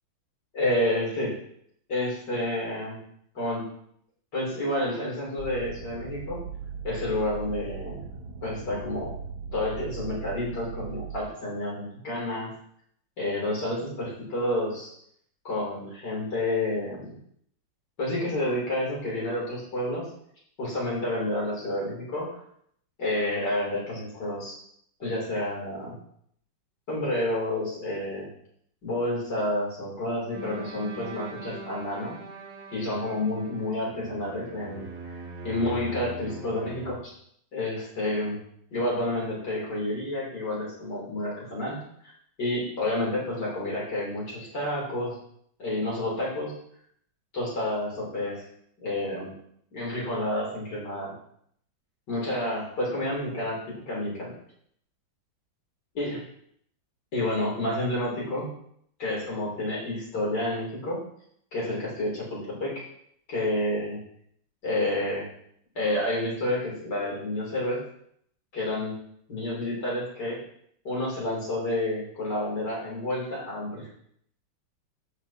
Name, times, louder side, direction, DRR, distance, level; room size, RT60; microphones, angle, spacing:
voice 1, 0.5-1.4 1.9-3.0 3.4-3.7 4.3-6.4 6.8-8.1 8.4-9.1 9.5-12.5 13.2-14.9 15.4-17.2 18.0-20.1 20.6-22.4 23.0-24.6 25.0-26.0 26.9-28.3 28.8-32.2 32.7-34.9 35.4-37.1 37.5-38.4 38.7-41.8 42.4-45.2 45.6-46.5 47.3-48.4 48.8-49.3 49.7-51.1 52.1-54.3 56.0-56.2 57.1-58.5 59.0-61.0 61.5-62.7 63.3-64.0 64.6-65.3 65.8-67.8 68.5-69.0 69.3-70.4 70.8-73.9, left 1 dB, 60° left, -5 dB, 3.9 m, -29 dB
sound 1, 5.4-11.2, right 6 dB, 85° right, 1.6 m, -38 dB
sound 2, 30.3-36.9, right 3 dB, 55° right, 2.3 m, -41 dB
14.0 x 6.0 x 2.8 m, 0.67 s
omnidirectional pair, 2.1 m